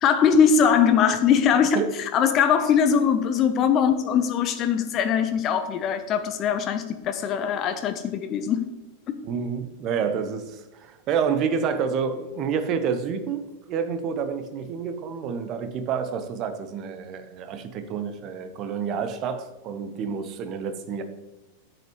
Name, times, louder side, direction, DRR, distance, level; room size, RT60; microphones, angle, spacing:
voice 1, 0.0-8.7 9.1-9.2, left 7 dB, 35° left, 9 dB, 0.7 m, -21 dB
voice 2, 9.2-13.4 13.7-21.0, right 6 dB, 35° right, 9 dB, 1.0 m, -28 dB
10.5 x 7.9 x 3.1 m, 1.1 s
figure-of-eight pair, 90°, 0 cm